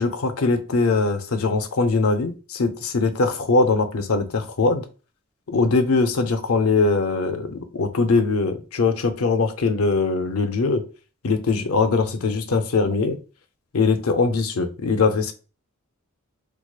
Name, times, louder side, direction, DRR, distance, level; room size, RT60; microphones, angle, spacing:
voice 1, 0.0-4.8 5.5-10.8 11.2-13.2 13.7-15.3, left 3 dB, 85° left, 0.6 m, -21 dB
4.6 x 2.4 x 2.4 m
head